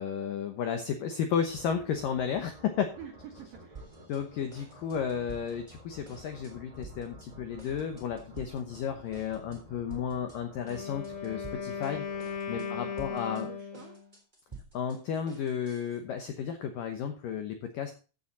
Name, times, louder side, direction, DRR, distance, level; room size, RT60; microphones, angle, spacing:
voice 1, 0.0-2.9 4.1-12.0 12.5-13.5 14.7-17.9, left 7 dB, 80° left, 6 dB, 2.0 m, -33 dB
sound 1, 1.4-13.1, equal, 30° right, 0.6 m, -52 dB
voice 2, 3.0-3.9 12.5-13.9, right 10 dB, 70° right, 4 dB, 2.1 m, -47 dB
sound 2, 3.7-4.2 4.5-5.8 6.0-6.5 6.8-7.3 7.6-8.8 9.1-9.6 9.9-10.4 10.7-11.9 12.2-12.7 13.0-16.0, right 4 dB, 10° right, 2.5 m, -50 dB
Wind instrument woodwind instrument, 10.6-14.1, left 6 dB, 50° left, 1.8 m, -37 dB
14.5 x 7.2 x 4.1 m, 0.35 s
omnidirectional pair, 5.4 m